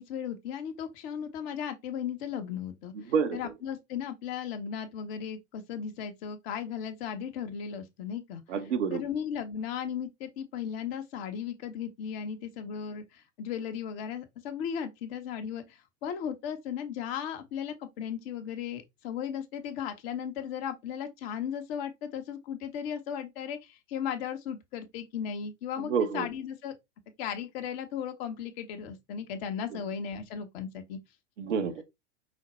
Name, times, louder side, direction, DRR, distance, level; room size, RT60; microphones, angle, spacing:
voice 1, 0.0-8.4 8.9-26.7 27.2-31.0, left 8 dB, 55° left, 1.2 m, -36 dB
voice 2, 2.9-3.5 8.5-9.0 25.8-26.3 29.7-29.8 31.4-31.8, right 6 dB, 80° right, 1.1 m, -29 dB
5.6 x 2.2 x 4.2 m
hypercardioid pair, 100°, 36 cm